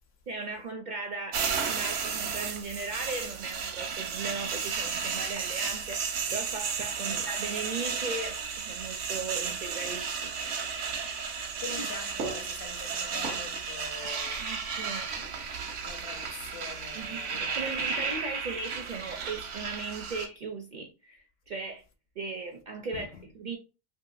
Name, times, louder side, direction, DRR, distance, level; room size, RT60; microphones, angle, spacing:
voice 1, 0.3-10.3 11.7-11.9 14.4-15.1 16.9-21.8 22.2-23.6, right 3 dB, 60° right, 0.5 m, -37 dB
sound 1, 1.3-20.3, right 6 dB, 85° right, 1.0 m, -33 dB
voice 2, 11.3-14.5 15.8-18.3 22.9-23.2, left 4 dB, 65° left, 0.8 m, -44 dB
3.0 x 2.7 x 2.4 m
omnidirectional pair, 1.2 m